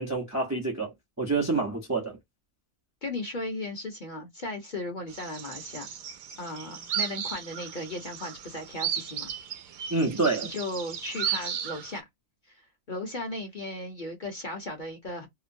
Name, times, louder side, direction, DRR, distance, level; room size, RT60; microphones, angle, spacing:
voice 1, 0.0-2.2 9.9-10.5, right 3 dB, 20° right, 0.5 m, -28 dB
voice 2, 3.0-5.9 6.4-9.3 10.4-12.0 12.9-15.3, left 2 dB, 40° left, 0.9 m, -36 dB
sound 1, 5.1-12.0, right 8 dB, 75° right, 1.0 m, -35 dB
2.9 x 2.1 x 2.6 m
omnidirectional pair, 1.6 m